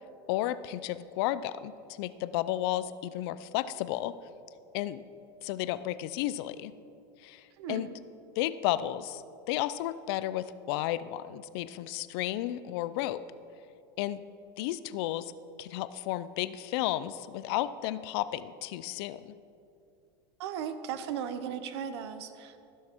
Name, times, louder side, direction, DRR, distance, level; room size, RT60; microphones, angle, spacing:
voice 1, 0.3-4.1 4.7-5.0 5.4-6.7 7.2-7.9 8.4-9.2 9.5-13.2 14.0-14.2 14.6-15.3 15.6-19.3, left 14 dB, 70° left, 14 dB, 0.5 m, -33 dB
voice 2, 20.4-22.6, right 8 dB, 80° right, 11 dB, 0.8 m, -36 dB
15.0 x 6.4 x 4.5 m, 2.6 s
supercardioid pair, 120°, 14 cm